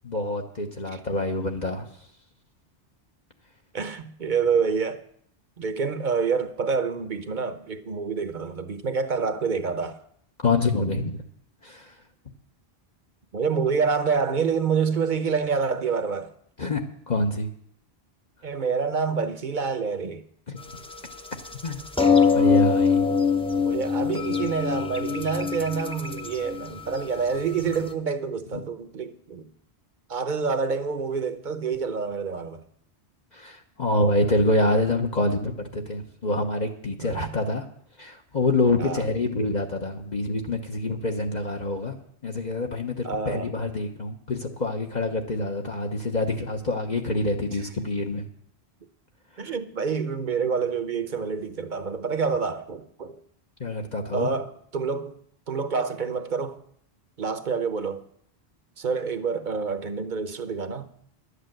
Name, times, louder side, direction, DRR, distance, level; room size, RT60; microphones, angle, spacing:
voice 1, 0.0-1.9 10.4-11.2 11.6-11.9 16.6-17.5 20.5-20.6 21.6-21.8 22.3-23.0 33.3-37.6 38.0-42.0 42.2-48.2 49.3-49.5 53.6-54.4, left 2 dB, 45° left, 1.1 m, -26 dB
voice 2, 3.7-5.0 5.6-10.0 13.3-16.3 18.4-20.2 23.6-29.5 30.1-32.6 37.0-37.3 38.8-39.0 43.0-43.5 49.4-53.2 54.1-55.2 55.5-56.6 57.2-58.0 58.8-60.8, right 5 dB, 50° right, 1.0 m, -27 dB
sound 1, 20.7-27.8, left 6 dB, 5° left, 0.6 m, -23 dB
11.5 x 8.2 x 7.8 m
omnidirectional pair, 1.1 m